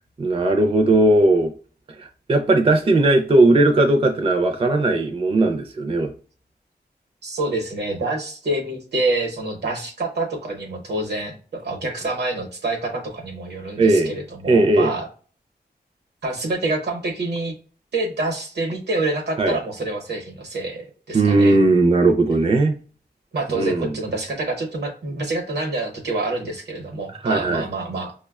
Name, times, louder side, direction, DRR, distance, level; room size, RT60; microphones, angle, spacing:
voice 1, 0.2-1.5 2.0-6.1 13.8-14.1 14.5-14.9 19.4-19.6 21.1-22.7 23.5-23.9 27.2-27.6, right 2 dB, 35° right, 5 dB, 0.4 m, -17 dB
voice 2, 7.2-15.1 16.2-17.5 17.9-21.6 23.3-28.1, right 2 dB, 80° right, 2 dB, 0.8 m, -27 dB
5.7 x 2.1 x 2.3 m, 0.41 s
wide cardioid pair, 80°, 17 cm